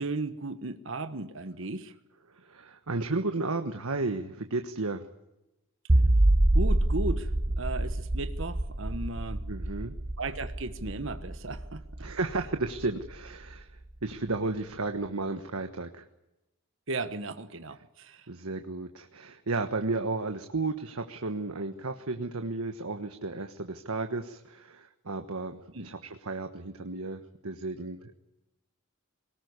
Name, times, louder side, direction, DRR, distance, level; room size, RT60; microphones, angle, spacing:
voice 1, 0.0-1.9 6.5-7.3 7.6-9.4 10.2-11.8 16.9-18.2 25.7-25.9, right 3 dB, 60° right, 9 dB, 1.3 m, -35 dB
voice 2, 2.3-5.1 9.5-9.9 12.0-16.0 18.3-28.2, right 3 dB, 85° right, 6 dB, 1.4 m, -33 dB
sound 1, 5.9-13.1, right 1 dB, 30° right, 0.8 m, -26 dB
22.0 x 19.0 x 9.7 m, 0.96 s
head